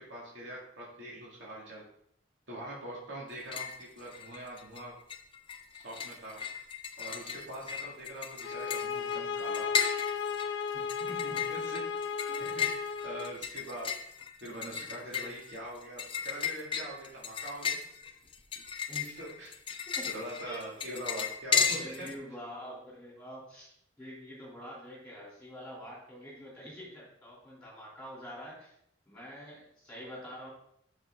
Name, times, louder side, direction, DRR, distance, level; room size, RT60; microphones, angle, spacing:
voice 1, 0.0-1.8 2.5-4.9 5.7-6.4 7.0-9.7 11.2-11.8 12.4-12.7 13.0-13.9 14.4-17.8 19.2-19.5 20.0-22.1, right 1 dB, 70° right, -5 dB, 2.5 m, -43 dB
sound 1, 3.3-3.8 4.1-4.8 5.1-22.1, left 6 dB, 25° left, 0.6 m, -35 dB
sound 2, 8.4-13.4, left 6 dB, 70° left, 0.5 m, -35 dB
voice 2, 10.7-11.4 12.3-12.4 18.9-19.2 19.9-20.1 20.4-20.6 21.7-28.7 29.1-30.5, equal, 5° left, -6 dB, 3.3 m, -46 dB
7.8 x 6.6 x 3.8 m, 0.68 s
head